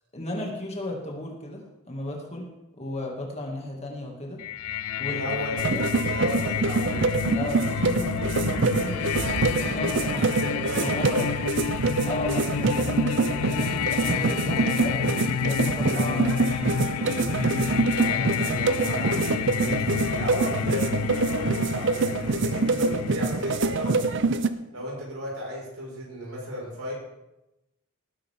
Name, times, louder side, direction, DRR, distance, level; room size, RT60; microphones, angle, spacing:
voice 1, 0.1-2.5 2.7-4.4 5.0-5.2 5.7-5.9 7.3-10.2 10.8-11.3 12.0-14.9 15.4-17.3, left 1 dB, 30° left, -1 dB, 2.5 m, -35 dB
sound 1, 4.4-24.2, left 8 dB, 90° left, 0.4 m, -30 dB
voice 2, 5.0-7.2 8.5-8.8 10.2-11.3 13.1-13.5 14.2-15.2 15.7-16.4 18.0-24.0 24.7-26.9, equal, 80° right, -3 dB, 5.7 m, -35 dB
sound 2, 5.6-24.5, right 3 dB, 55° right, 0.7 m, -25 dB
18.5 x 10.5 x 3.8 m, 0.93 s
head